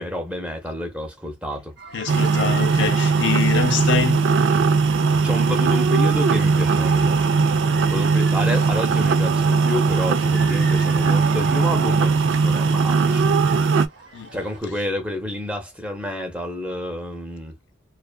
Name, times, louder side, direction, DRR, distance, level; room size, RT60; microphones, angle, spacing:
voice 1, 0.0-1.8 3.1-3.2 5.2-7.3 7.9-13.3 14.3-17.6, equal, 5° right, 0.6 m, -29 dB
sound 1, 1.8-14.6, right 3 dB, 60° right, 0.7 m, -41 dB
voice 2, 1.9-4.2 14.1-14.3, left 6 dB, 70° left, 0.5 m, -24 dB
sound 2, 2.1-13.9, right 4 dB, 75° right, 0.4 m, -19 dB
2.6 x 2.3 x 2.2 m
head